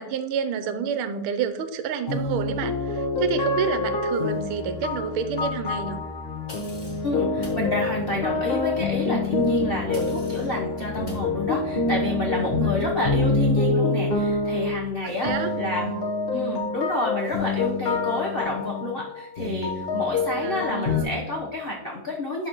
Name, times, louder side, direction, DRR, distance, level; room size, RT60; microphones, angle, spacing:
voice 1, 0.0-6.0 12.6-13.0 15.0-15.5 20.4-21.2, right 7 dB, 80° right, 10 dB, 1.5 m, -29 dB
sound 1, 2.1-21.0, left 3 dB, 40° left, 0.8 m, -26 dB
sound 2, 6.5-7.1 7.4-7.6 9.9-10.5 11.1-11.3, left 2 dB, 20° left, 1.6 m, -43 dB
voice 2, 7.0-15.9 16.3-22.5, left 2 dB, 70° left, -2 dB, 0.5 m, -29 dB
11.5 x 4.1 x 3.0 m, 0.92 s
omnidirectional pair, 2.4 m